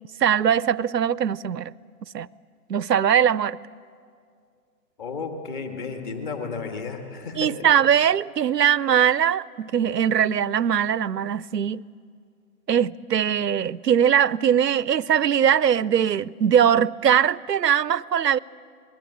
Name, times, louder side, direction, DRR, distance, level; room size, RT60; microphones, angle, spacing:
voice 1, 0.2-1.7 2.1-2.3 2.7-3.6 7.3-11.8 12.7-18.4, right 8 dB, 75° right, 0.7 m, -21 dB
voice 2, 5.0-7.5, left 4 dB, 30° left, 2.2 m, -33 dB
27.5 x 21.0 x 8.5 m
figure-of-eight pair, 140°, 49 cm